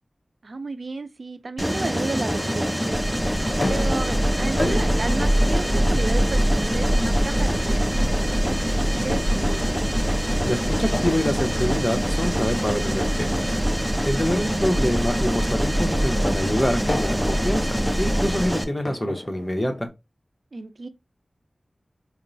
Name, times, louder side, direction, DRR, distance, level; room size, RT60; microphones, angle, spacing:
voice 1, 0.4-3.1 3.5-9.8 14.4-14.7 20.5-20.9, right 3 dB, 75° right, 0.3 m, -33 dB
Mechanisms, 1.6-18.6, equal, 5° right, 0.5 m, -26 dB
sound 1, 1.9-19.9, left 1 dB, 55° left, 0.8 m, -35 dB
sound 2, 2.9-18.5, equal, 30° right, 1.0 m, -26 dB
voice 2, 10.4-13.5 14.0-17.7 18.0-19.9, equal, 20° left, 0.9 m, -26 dB
4.3 x 2.0 x 2.6 m
cardioid pair, 40°, 0 cm